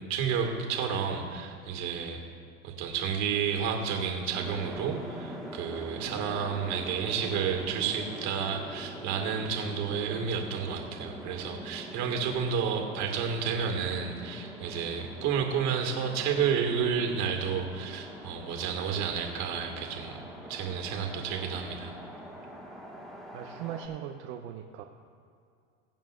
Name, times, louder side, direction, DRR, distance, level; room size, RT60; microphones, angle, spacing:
voice 1, 0.1-2.2 2.6-20.2 20.5-21.9, right 6 dB, 45° right, 2 dB, 2.1 m, -31 dB
sound 1, 4.3-23.9, equal, ahead, 1.7 m, -43 dB
voice 2, 23.3-24.8, right 10 dB, 65° right, 4 dB, 0.9 m, -39 dB
22.5 x 8.9 x 2.6 m, 2.4 s
supercardioid pair, 135°, 38 cm